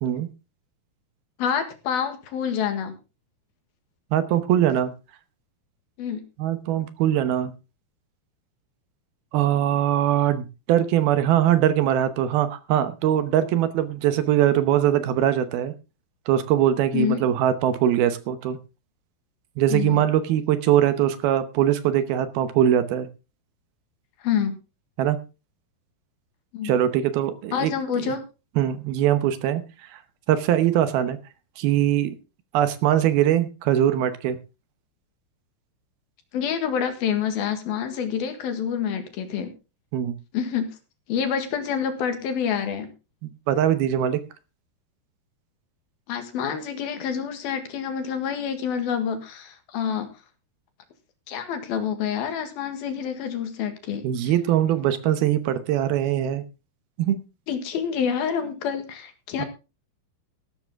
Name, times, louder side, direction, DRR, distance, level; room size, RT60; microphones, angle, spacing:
voice 1, 1.4-2.9 6.0-6.2 16.9-17.2 19.7-20.0 24.2-24.6 26.5-26.7 27.5-28.2 36.3-39.5 40.3-40.8 41.1-42.9 46.1-50.1 51.3-54.3 57.5-59.5, left 7 dB, 70° left, 8 dB, 3.5 m, -27 dB
voice 2, 4.1-4.9 6.4-7.5 9.3-15.7 16.3-18.6 19.6-23.1 25.0-25.2 26.6-27.7 28.0-28.1 28.6-30.0 30.3-31.2 31.6-32.2 32.5-34.4 39.9-40.1 43.2-44.2 54.0-56.4 57.0-57.2 59.4-59.5, right 11 dB, 75° right, 12 dB, 2.7 m, -22 dB
14.5 x 12.5 x 3.6 m, 0.29 s
omnidirectional pair, 4.7 m